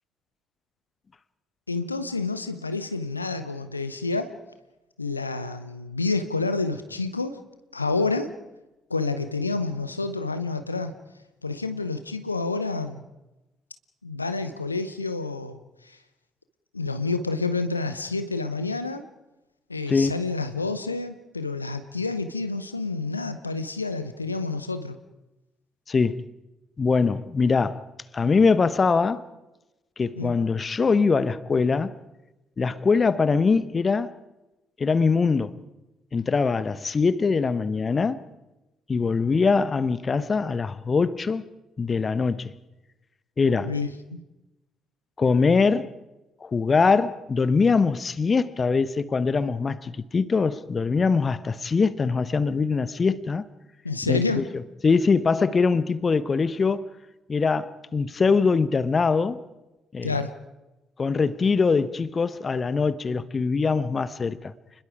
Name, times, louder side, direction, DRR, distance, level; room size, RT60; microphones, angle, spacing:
voice 1, 1.7-4.3 5.0-7.4 7.7-8.3 8.9-10.9 11.4-13.0 14.0-16.0 16.7-19.1 19.7-25.0 30.2-30.3 43.6-44.2 53.8-54.5 60.0-60.3, left 3 dB, 85° left, 0.8 m, -29 dB
voice 2, 25.9-26.2 26.8-27.8 28.1-29.2 30.0-32.0 32.6-34.1 34.8-35.6 36.1-38.2 38.9-41.4 41.8-42.5 43.4-43.7 45.2-45.9 46.4-53.4 54.1-54.4 54.8-56.9 57.3-59.4 59.9-60.1 61.0-64.5, left 4 dB, 35° left, 1.1 m, -22 dB
30.0 x 21.0 x 4.9 m
figure-of-eight pair, 45°, 0 cm